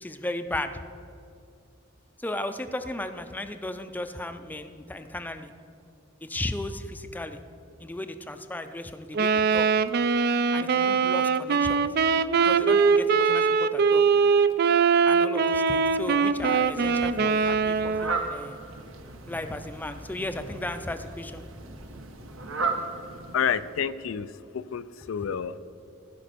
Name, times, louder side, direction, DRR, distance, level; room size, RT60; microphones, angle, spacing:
voice 1, 0.0-0.8 2.2-5.5 6.2-7.4 7.8-9.7 10.5-11.9 12.4-14.0 15.1-18.6 19.2-21.4, left 1 dB, 10° left, 9 dB, 0.5 m, -35 dB
Wind instrument woodwind instrument, 9.1-18.2, right 5 dB, 50° right, 0.4 m, -22 dB
Fowl, 16.5-23.9, right 3 dB, 80° right, 1.2 m, -36 dB
voice 2, 23.3-24.3 24.5-25.6, left 7 dB, 80° left, 14 dB, 0.4 m, -29 dB
15.5 x 5.2 x 6.8 m, 2.5 s
head